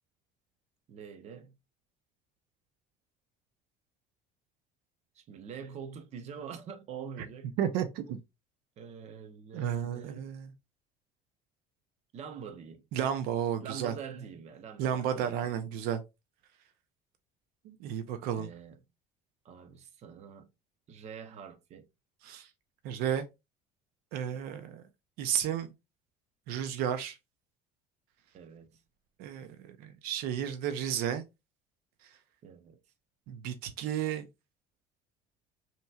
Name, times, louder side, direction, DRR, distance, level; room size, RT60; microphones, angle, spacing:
voice 1, 0.9-1.5 5.1-7.6 8.8-10.3 12.1-12.8 13.6-15.5 18.3-18.8 19.4-20.5 20.9-21.9 28.3-28.8 32.4-32.8, right 7 dB, 45° right, 0.8 m, -45 dB
voice 2, 7.6-8.2 9.5-10.5 12.9-13.9 14.8-16.0 17.6-18.5 22.2-22.5 22.8-23.3 24.1-24.8 25.2-25.7 26.5-27.2 29.2-31.2 33.3-34.2, right 9 dB, 75° right, 0.6 m, -32 dB
5.5 x 3.0 x 2.3 m
cardioid pair, 140°, 16 cm